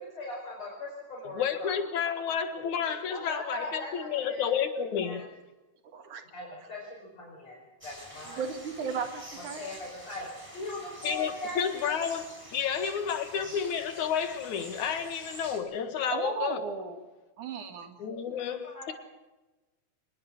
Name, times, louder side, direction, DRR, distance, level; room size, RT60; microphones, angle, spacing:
voice 1, 0.0-1.7 3.1-4.6 5.0-5.2 6.3-8.5 9.6-10.3 10.5-11.9 18.3-18.9, left 1 dB, 55° left, 6.0 m, -40 dB
voice 2, 1.3-5.3 11.0-16.7 18.0-18.9, left 7 dB, 70° left, 3.1 m, -31 dB
voice 3, 5.9-6.2 8.4-9.6 16.1-17.0 17.4-17.9, right 6 dB, 70° right, 3.3 m, -35 dB
sound 1, 7.8-15.6, equal, 10° right, 5.5 m, -47 dB
24.5 x 21.0 x 6.1 m
omnidirectional pair, 3.7 m